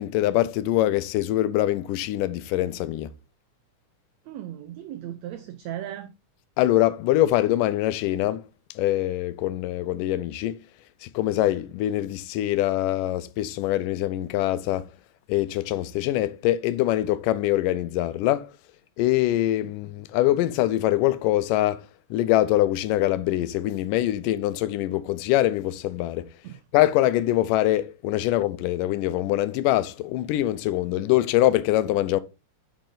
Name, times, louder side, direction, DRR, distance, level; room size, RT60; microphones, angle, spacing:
voice 1, 0.0-3.1 6.6-8.4 8.8-10.6 11.0-14.9 15.3-18.5 19.0-21.8 22.1-26.3 26.7-32.2, left 14 dB, 90° left, 2.3 m, -23 dB
voice 2, 4.2-6.1 26.4-26.6, right 12 dB, 75° right, 1.6 m, -36 dB
10.0 x 5.4 x 3.9 m
omnidirectional pair, 3.7 m